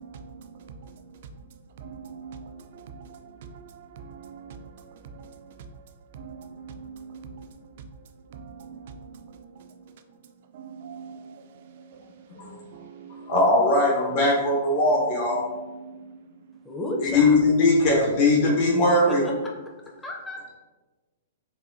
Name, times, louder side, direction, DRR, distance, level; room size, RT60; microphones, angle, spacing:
voice 1, 0.0-13.3 15.3-16.6, right 5 dB, 55° right, 7 dB, 0.3 m, -44 dB
voice 2, 13.3-15.4 17.0-19.2, left 2 dB, 45° left, -2 dB, 0.8 m, -20 dB
voice 3, 16.6-17.4 18.4-19.5 20.0-20.4, left 1 dB, 10° left, -1 dB, 0.6 m, -32 dB
4.0 x 2.2 x 2.6 m, 1.2 s
hypercardioid pair, 120°, 0 cm